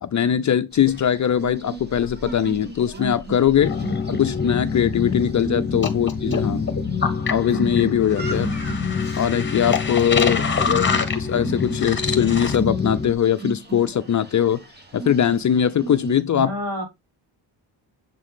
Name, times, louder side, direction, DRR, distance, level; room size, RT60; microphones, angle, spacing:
voice 1, 0.0-3.8 4.1-6.7 7.3-8.5 9.2-14.6 14.9-16.5, left 9 dB, 45° left, 0.6 m, -21 dB
sound 1, 0.7-16.2, right 3 dB, 25° right, 1.3 m, -36 dB
sound 2, 3.6-13.1, left 5 dB, 25° left, 1.2 m, -25 dB
voice 2, 10.3-11.0 16.3-16.8, equal, 60° right, 4.2 m, -32 dB
7.4 x 3.7 x 3.6 m
cardioid pair, 105°, 42 cm